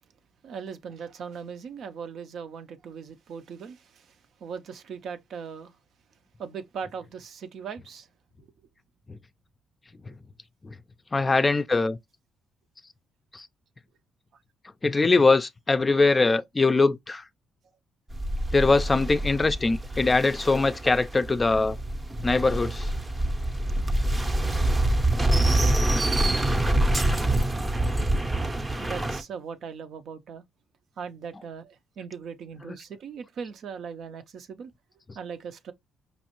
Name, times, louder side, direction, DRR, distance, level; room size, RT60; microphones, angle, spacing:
voice 1, 0.4-4.2 4.4-5.7 6.4-8.1 8.4-8.5 28.8-30.4 31.0-34.7 35.1-35.7, right 6 dB, 65° right, 0.6 m, -39 dB
voice 2, 11.1-12.0 13.3-13.5 14.8-17.2 18.5-21.8 22.2-22.9 32.7-32.8, left 3 dB, 25° left, 0.4 m, -22 dB
sound 1, 18.1-29.2, right 1 dB, 20° right, 0.6 m, -25 dB
5.2 x 2.4 x 2.9 m
cardioid pair, 90°, 0 cm